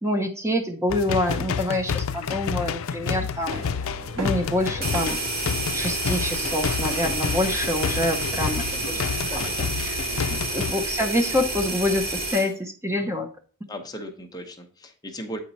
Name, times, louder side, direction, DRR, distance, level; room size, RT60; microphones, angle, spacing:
voice 1, 0.0-3.6 4.2-5.2 5.7-9.0 9.6-10.0 10.5-13.3, left 1 dB, 15° right, 4 dB, 0.8 m, -26 dB
sound 1, 0.9-10.7, left 6 dB, 75° left, 0.4 m, -29 dB
sound 2, 3.5-12.3, equal, 75° right, 3.4 m, -39 dB
sound 3, 4.8-12.5, right 2 dB, 45° right, 2.6 m, -29 dB
voice 2, 9.3-9.6 10.1-10.6 13.7-15.4, equal, 20° left, 4 dB, 1.0 m, -37 dB
9.1 x 4.6 x 4.1 m, 0.41 s
head